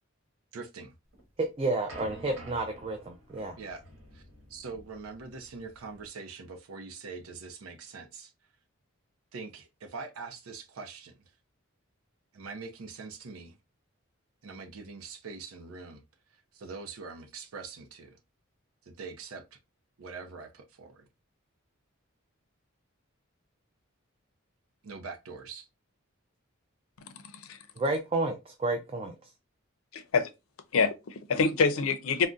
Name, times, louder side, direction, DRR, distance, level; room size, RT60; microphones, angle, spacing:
voice 1, 0.5-0.9 3.5-3.8 4.1-4.2 4.5-8.3 9.3-11.2 12.3-13.6 14.4-16.0 16.3-18.2 18.8-19.6 20.0-21.1 24.8-25.7, right 4 dB, 90° right, 0.6 m, -43 dB
sound 1, 1.1-6.1, equal, 65° right, 1.4 m, -50 dB
voice 2, 1.4-3.5 27.8-29.3, right 2 dB, 25° right, 0.3 m, -31 dB
voice 3, 29.9-30.3 30.7-32.3, left 5 dB, 80° left, 0.5 m, -26 dB
3.7 x 2.1 x 2.4 m
head